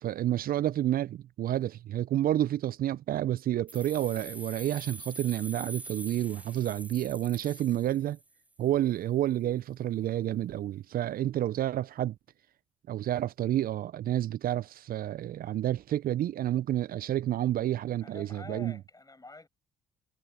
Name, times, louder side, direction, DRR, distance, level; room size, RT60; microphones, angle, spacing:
voice 1, 0.0-8.2 8.6-12.1 12.9-18.7, right 12 dB, 55° right, 0.9 m, -29 dB
sound 1, 3.7-8.5, right 1 dB, 10° right, 0.8 m, -45 dB
voice 2, 18.0-19.5, left 2 dB, 20° left, 7.5 m, -47 dB
hypercardioid pair, 45°, 18 cm